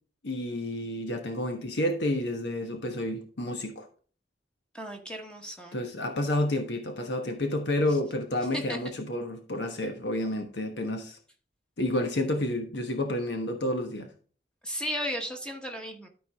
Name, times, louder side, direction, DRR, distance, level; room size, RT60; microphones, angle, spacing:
voice 1, 0.2-3.8 5.7-11.2 11.8-14.1, left 1 dB, 75° left, 1.2 m, -30 dB
voice 2, 4.7-5.8 8.5-8.8 14.6-16.1, equal, 5° left, 1.1 m, -35 dB
13.0 x 4.6 x 3.5 m
head